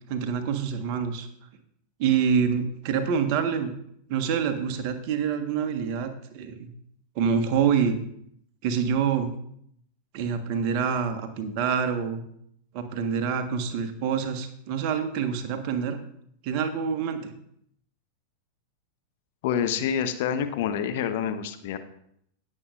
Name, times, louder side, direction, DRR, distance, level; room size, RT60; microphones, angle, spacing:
voice 1, 0.1-1.3 2.0-3.7 4.1-6.7 7.1-8.0 8.6-9.3 10.1-12.2 12.7-16.0 16.4-17.3, right 7 dB, 45° right, 7 dB, 1.4 m, -26 dB
voice 2, 19.4-21.8, left 8 dB, 50° left, 8 dB, 1.0 m, -27 dB
19.0 x 7.7 x 2.5 m, 0.70 s
figure-of-eight pair, 90°, 0 cm